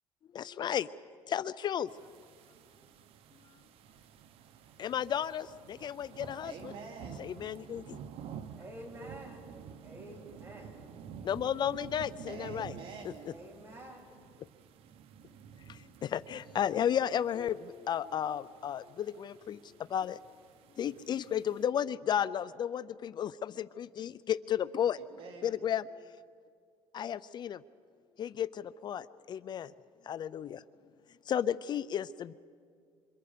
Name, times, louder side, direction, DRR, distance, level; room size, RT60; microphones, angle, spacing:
voice 1, 0.3-0.9 1.3-1.9 4.8-6.7 7.2-8.0 11.2-12.7 13.0-13.1 15.7-20.2 20.8-25.0 25.4-25.9 26.9-27.6 28.2-29.7 30.0-30.6 31.3-32.3, left 9 dB, 50° left, 0.5 m, -33 dB
sound 1, 1.9-21.7, right 8 dB, 80° right, 1.1 m, -51 dB
voice 2, 6.4-7.2 12.3-13.3 25.1-25.6, right 5 dB, 60° right, 2.8 m, -46 dB
voice 3, 8.5-10.9 13.3-14.0, right 1 dB, 25° right, 7.1 m, -49 dB
27.0 x 27.0 x 5.1 m
cardioid pair, 105°, 10 cm